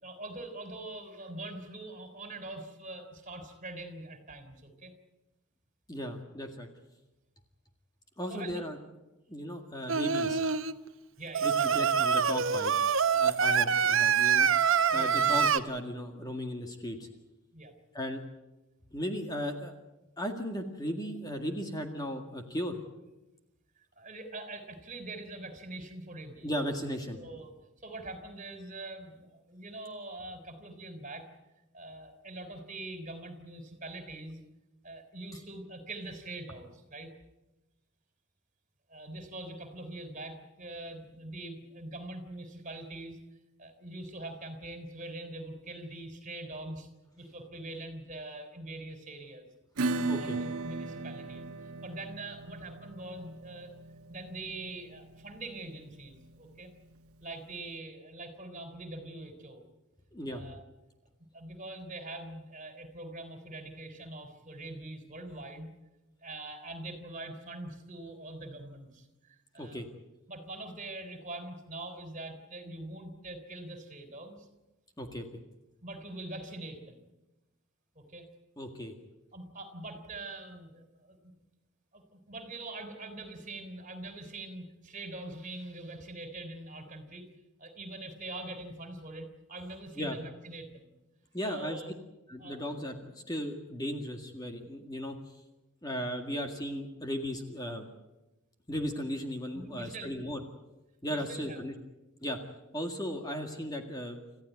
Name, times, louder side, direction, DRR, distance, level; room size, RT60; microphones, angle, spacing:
voice 1, 0.0-4.9 8.3-8.7 11.2-12.1 14.7-15.3 17.5-17.8 24.0-26.5 27.1-27.5 27.8-31.3 31.7-34.4 34.8-37.1 38.9-43.2 43.6-46.9 47.2-49.5 50.2-51.5 51.8-53.7 54.1-56.7 57.2-59.6 60.3-60.6 61.3-65.7 66.2-69.8 70.3-74.5 75.8-77.0 78.0-78.3 79.3-81.3 81.9-87.3 87.6-90.9 91.4-91.9 92.4-92.7 96.0-96.1 99.5-100.1 101.1-101.6, right 2 dB, 35° right, 8 dB, 3.6 m, -43 dB
voice 2, 5.9-6.7 8.2-8.8 9.3-10.4 11.4-12.7 13.1-14.5 14.9-17.1 17.9-18.2 18.9-19.7 20.2-22.8 26.4-27.2 50.1-50.4 60.1-60.4 69.6-69.9 75.0-75.3 78.6-78.9 90.0-90.2 91.3-91.8 92.3-95.2 95.8-97.9 98.7-100.4 101.0-101.7 102.2-102.4 102.7-104.2, equal, 15° left, 4 dB, 1.9 m, -36 dB
Singing, 9.9-10.7 11.3-15.6, right 6 dB, 65° right, 1.0 m, -25 dB
Acoustic guitar / Strum, 49.8-57.0, right 3 dB, 90° right, 1.4 m, -37 dB
28.0 x 15.0 x 9.3 m, 1.0 s
head